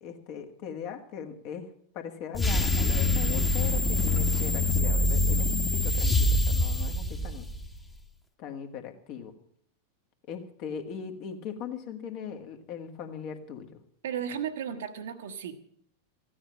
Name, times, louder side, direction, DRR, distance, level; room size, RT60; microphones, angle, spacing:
voice 1, 0.0-7.5 8.4-9.3 10.3-13.7, left 7 dB, 45° left, 5 dB, 1.8 m, -39 dB
sound 1, 2.3-7.8, left 2 dB, 10° left, 1.4 m, -25 dB
voice 2, 14.0-15.6, right 8 dB, 60° right, 8 dB, 1.3 m, -34 dB
15.0 x 9.8 x 7.5 m, 0.67 s
figure-of-eight pair, 90°, 0 cm